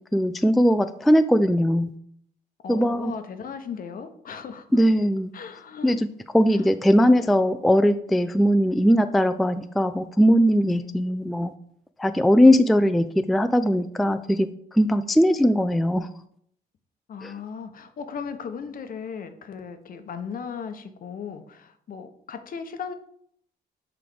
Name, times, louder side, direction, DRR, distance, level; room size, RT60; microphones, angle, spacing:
voice 1, 0.1-1.9 2.7-3.1 4.7-5.3 5.8-6.1 6.3-11.5 12.0-14.5 14.7-16.1 17.2-17.3, equal, ahead, 10 dB, 0.3 m, -20 dB
voice 2, 2.6-4.8 5.3-6.0 6.5-6.7 10.7-11.0 17.1-22.9, left 6 dB, 55° left, 8 dB, 0.8 m, -37 dB
5.9 x 3.4 x 4.9 m, 0.66 s
cardioid pair, 80°, 17 cm